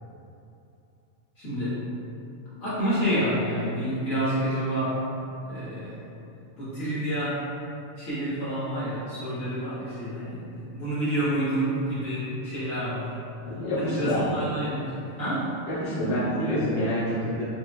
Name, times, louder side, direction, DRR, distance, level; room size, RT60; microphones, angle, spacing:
voice 1, 1.4-1.8 2.6-5.0 5.5-5.9 6.6-7.4 8.0-13.1 13.7-15.5, right 1 dB, 65° left, -13 dB, 1.7 m, -28 dB
voice 2, 13.4-14.4 15.7-17.4, equal, 45° left, -13 dB, 1.3 m, -27 dB
4.9 x 2.7 x 2.3 m, 2.7 s
omnidirectional pair, 1.5 m